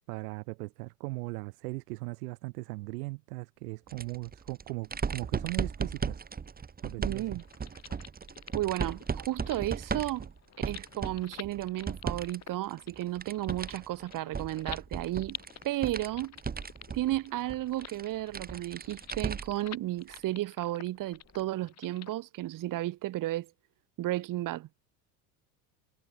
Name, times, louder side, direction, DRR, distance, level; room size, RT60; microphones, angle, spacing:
voice 1, 0.1-6.2 6.8-7.4, right 24 dB, 80° right, 2.0 m, -38 dB
sound 1, 3.9-12.4 12.7-19.7 20.1-20.2 21.4-21.5, right 5 dB, 20° right, 3.9 m, -37 dB
voice 2, 7.0-7.4 8.5-10.3 10.6-15.4 15.6-16.4 16.9-23.5 24.0-24.7, right 15 dB, 45° right, 2.5 m, -33 dB
sound 2, 7.3-22.1, left 10 dB, 35° left, 3.6 m, -50 dB
supercardioid pair, 130°, 46 cm